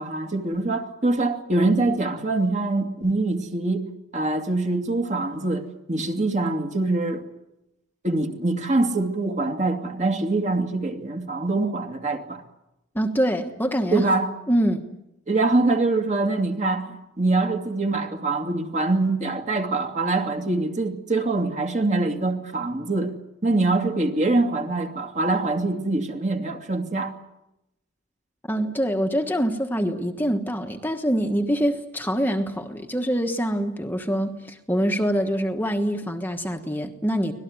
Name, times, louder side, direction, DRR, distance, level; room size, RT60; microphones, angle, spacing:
voice 1, 0.0-3.8 4.1-7.2 8.0-12.4 13.9-14.3 15.3-23.1 23.4-27.1, right 2 dB, 35° right, 2.5 m, -24 dB
voice 2, 12.9-14.1 14.5-14.9 28.5-37.3, equal, 10° left, 1.3 m, -25 dB
25.0 x 19.0 x 9.6 m
head